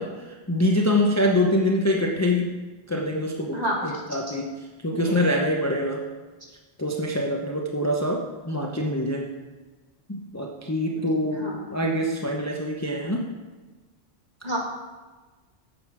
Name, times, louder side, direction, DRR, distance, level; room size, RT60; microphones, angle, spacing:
voice 1, 0.0-2.6 2.9-4.5 4.8-6.0 6.8-9.3 10.1-13.2, left 1 dB, 15° left, 0 dB, 0.8 m, -25 dB
voice 2, 3.5-3.9 4.9-5.2 10.9-11.1 11.4-11.6 14.4-14.6, right 1 dB, 40° right, -3 dB, 2.3 m, -29 dB
9.4 x 7.1 x 6.0 m, 1.3 s
omnidirectional pair, 1.1 m